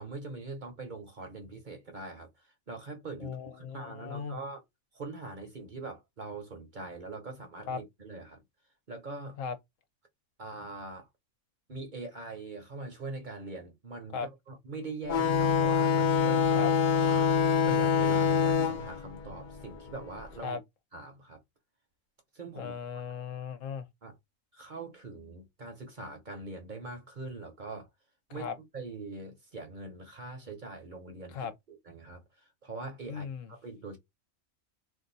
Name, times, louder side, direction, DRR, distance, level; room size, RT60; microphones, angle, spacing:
voice 1, 0.0-4.6 4.9-8.4 8.9-9.4 10.4-11.1 11.7-17.3 17.7-20.6 20.9-21.4 22.3-22.7 24.0-24.1 24.5-27.9 28.3-28.5 28.7-34.0, right 3 dB, 40° right, 0.9 m, -42 dB
voice 2, 3.2-4.4 7.7-7.8 9.4-9.5 14.1-14.3 16.5-16.7 20.4-20.6 22.6-23.9 28.3-28.5 31.3-31.5 33.1-33.5, left 6 dB, 70° left, 1.0 m, -37 dB
sound 1, 15.1-20.2, left 6 dB, 50° left, 0.6 m, -26 dB
2.6 x 2.5 x 3.9 m
omnidirectional pair, 1.4 m